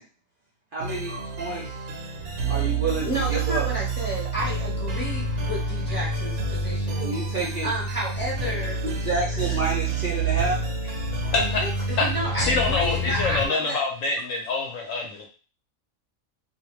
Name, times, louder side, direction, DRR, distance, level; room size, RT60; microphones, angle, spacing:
voice 1, 0.7-1.7 2.5-3.7 7.0-7.7 8.8-10.9 11.2-11.3, right 3 dB, 50° right, -5 dB, 0.7 m, -29 dB
sound 1, 0.8-13.5, right 2 dB, 80° right, 1.1 m, -28 dB
voice 2, 3.0-8.8 11.3-13.8, right 1 dB, 10° left, -5 dB, 0.9 m, -32 dB
voice 3, 12.4-15.3, left 3 dB, 70° left, 1 dB, 0.9 m, -25 dB
2.5 x 2.1 x 3.0 m, 0.36 s
omnidirectional pair, 1.5 m